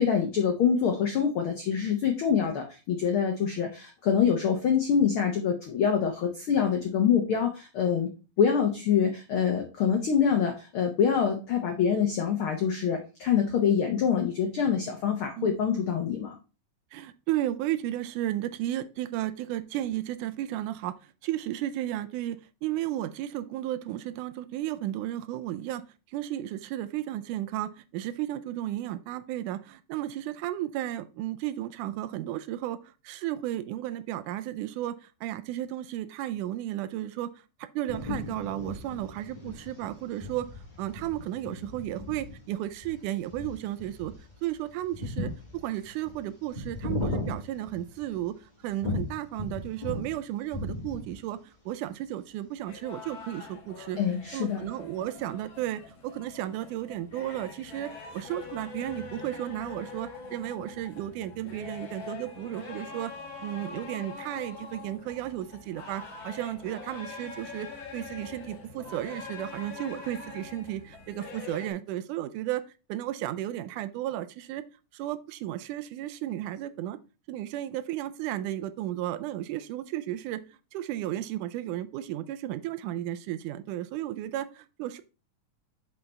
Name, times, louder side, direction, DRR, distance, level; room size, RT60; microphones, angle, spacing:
voice 1, 0.0-8.1 8.4-16.4 54.0-54.6, left 7 dB, 80° left, 4 dB, 1.2 m, -25 dB
voice 2, 16.9-40.5 40.8-44.1 44.4-54.0 54.3-63.1 63.4-72.6 72.9-74.6 74.9-77.0 77.3-80.4 80.7-85.0, right 13 dB, 80° right, 13 dB, 2.0 m, -34 dB
sound 1, 37.9-48.3 48.8-50.2 50.4-51.3, left 2 dB, 15° left, 2.1 m, -36 dB
sound 2, 52.6-71.7, left 4 dB, 45° left, 1.9 m, -44 dB
5.8 x 5.4 x 4.0 m, 0.32 s
omnidirectional pair, 3.7 m